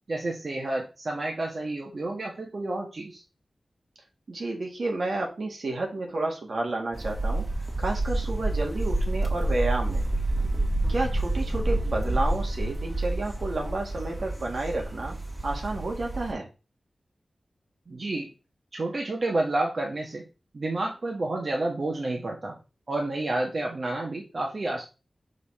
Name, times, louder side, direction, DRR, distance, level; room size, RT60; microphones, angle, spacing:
voice 1, 0.1-3.2 17.9-18.3 18.7-20.2 20.5-22.6 22.9-24.8, right 2 dB, 55° right, 0 dB, 1.4 m, -30 dB
voice 2, 4.3-7.4 7.8-10.1 10.9-15.2 15.4-16.5, right 2 dB, 70° right, 1 dB, 1.9 m, -30 dB
sound 1, 6.9-16.3, right 1 dB, 25° right, 1.8 m, -28 dB
5.3 x 4.2 x 4.2 m, 0.30 s
cardioid pair, 60°, 0 cm